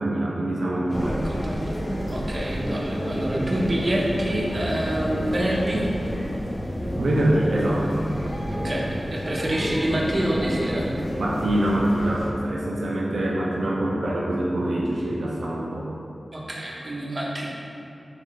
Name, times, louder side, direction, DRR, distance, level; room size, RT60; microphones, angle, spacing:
voice 1, 0.0-1.2 7.0-8.0 11.2-15.9, right 1 dB, 85° right, -4 dB, 0.4 m, -24 dB
sound 1, 0.9-12.3, equal, 10° left, 0.8 m, -29 dB
voice 2, 1.1-1.7 2.1-5.9 8.5-8.8 9.1-10.9 16.3-17.5, right 1 dB, 45° right, -4 dB, 0.6 m, -27 dB
3.9 x 3.1 x 3.1 m, 2.7 s
wide cardioid pair, 65°, 0 cm